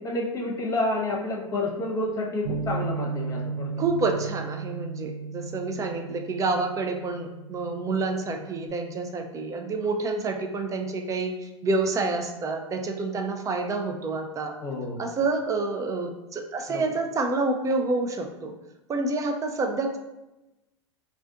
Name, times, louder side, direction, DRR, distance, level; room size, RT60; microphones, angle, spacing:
voice 1, 0.0-4.1 14.6-15.1 16.7-16.9, left 2 dB, 20° left, -2 dB, 0.9 m, -30 dB
Bass guitar, 2.4-8.7, right 4 dB, 70° right, 0.8 m, -35 dB
voice 2, 3.8-14.5 15.0-18.5 18.9-20.0, right 3 dB, 20° right, 4 dB, 0.5 m, -28 dB
2.4 x 2.4 x 3.6 m, 0.98 s
hypercardioid pair, 95°, 15 cm